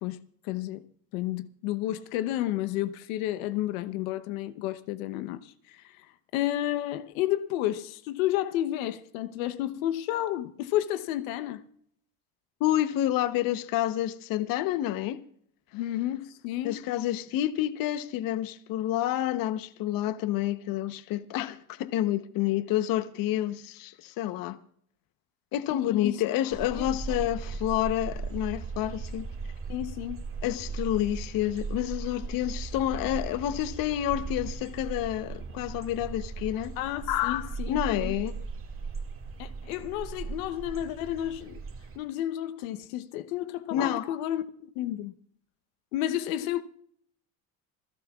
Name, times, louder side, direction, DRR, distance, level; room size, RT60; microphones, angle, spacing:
voice 1, 0.0-0.8 1.1-6.1 6.3-11.6 15.7-16.8 25.7-26.2 26.7-26.9 29.7-30.2 36.8-38.1 39.4-41.6 42.0-45.1 45.9-46.6, left 13 dB, 80° left, 1.0 m, -31 dB
voice 2, 12.6-15.2 16.6-24.6 25.5-29.3 30.4-36.8 37.1-38.5 43.7-44.2, left 13 dB, 55° left, 1.0 m, -29 dB
sound 1, 26.5-42.0, right 4 dB, 30° right, 2.2 m, -37 dB
27.0 x 12.0 x 2.4 m
supercardioid pair, 105°, 41 cm